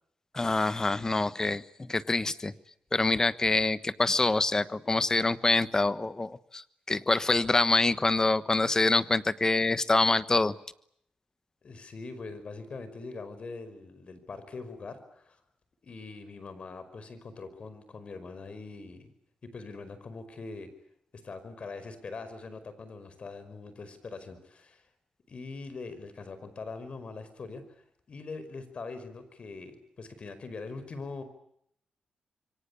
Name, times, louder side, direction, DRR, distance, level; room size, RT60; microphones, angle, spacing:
voice 1, 0.3-2.5 2.9-10.5, left 2 dB, 25° left, 15 dB, 1.2 m, -26 dB
voice 2, 11.6-15.4 15.8-19.1 19.4-20.7 21.2-24.9 25.3-27.6 28.1-31.2, left 3 dB, 50° left, 12 dB, 5.3 m, -42 dB
27.0 x 24.0 x 8.5 m, 0.71 s
cardioid pair, 90°, 3 cm